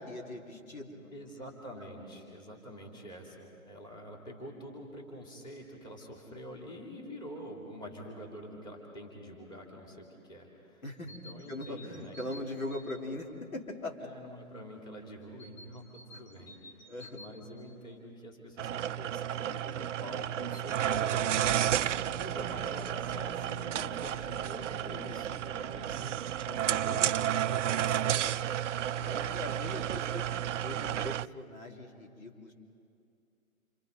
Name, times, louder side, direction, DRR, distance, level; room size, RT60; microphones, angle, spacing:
voice 1, 0.0-1.1 10.8-11.1 11.5-14.0 16.1-16.2 16.9-17.2 24.8-24.9 26.5-27.1 28.9-30.3 30.5-32.5, left 1 dB, 75° left, 1 dB, 3.7 m, -41 dB
voice 2, 1.1-12.1 14.0-28.5 29.4-30.2, equal, 10° left, -1 dB, 2.9 m, -46 dB
sound 1, 10.9-13.1 15.4-17.4, left 1 dB, 30° left, 2.5 m, -52 dB
sound 2, 18.6-31.3, right 10 dB, 60° right, 0.5 m, -32 dB
sound 3, 20.7-31.2, right 8 dB, 25° right, 0.7 m, -49 dB
28.0 x 27.0 x 5.4 m, 2.4 s
figure-of-eight pair, 135°, 42 cm